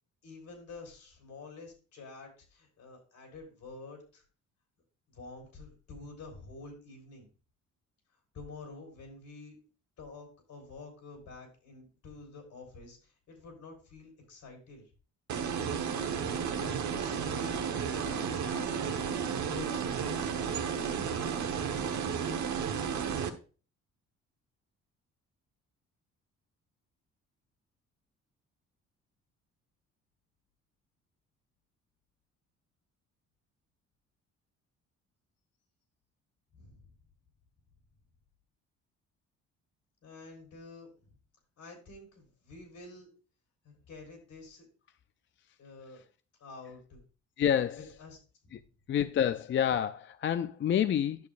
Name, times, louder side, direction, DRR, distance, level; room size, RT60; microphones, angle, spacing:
voice 1, 0.2-4.2 5.1-7.3 8.3-9.6 10.0-14.9 16.2-19.1 19.5-20.3 20.6-21.1 36.5-36.9 40.0-41.1 41.6-43.1 43.6-44.7 45.6-46.0 46.4-47.0 48.0-48.2 48.4-48.7, left 3 dB, 75° left, 3.8 m, -49 dB
sound 1, 15.3-23.3, right 7 dB, 70° right, 1.1 m, -33 dB
voice 2, 47.4-47.8 48.5-48.6 48.9-51.3, left 9 dB, 40° left, 0.4 m, -28 dB
10.5 x 6.6 x 2.5 m
cardioid pair, 90°, 30 cm